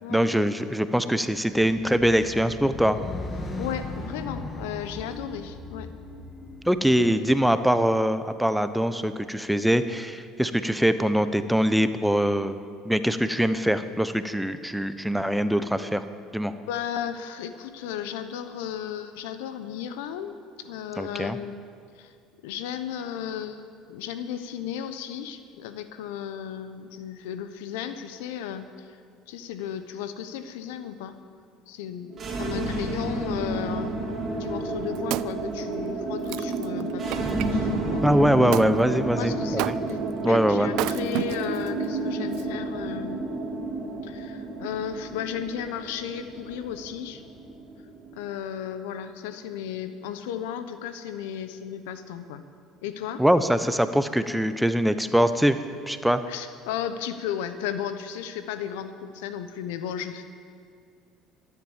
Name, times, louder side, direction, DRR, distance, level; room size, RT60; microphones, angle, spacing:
voice 1, 0.1-3.0 6.7-12.6 12.8-16.0 16.3-16.5 21.0-21.4 38.0-39.8 40.2-40.7 53.2-55.6 55.9-56.2, equal, 5° right, 11 dB, 0.8 m, -23 dB
sound 1, 1.5-7.9, left 2 dB, 25° left, 2.0 m, -38 dB
voice 2, 3.6-5.9 16.7-21.7 22.0-22.1 22.4-23.6 23.9-28.9 29.3-31.1 31.7-34.0 34.4-37.3 37.5-38.0 39.1-40.0 40.3-43.2 44.0-47.2 48.1-52.4 52.8-53.2 56.3-60.2, left 9 dB, 85° left, 10 dB, 0.9 m, -34 dB
sound 2, 32.1-48.2, right 2 dB, 40° right, 3.2 m, -30 dB
Wood, 34.5-37.5 38.5-38.7 39.6-40.1 40.7-41.7 42.3-42.4, right 17 dB, 70° right, 0.3 m, -32 dB
13.0 x 10.5 x 7.3 m, 2.3 s
supercardioid pair, 85°, 0 cm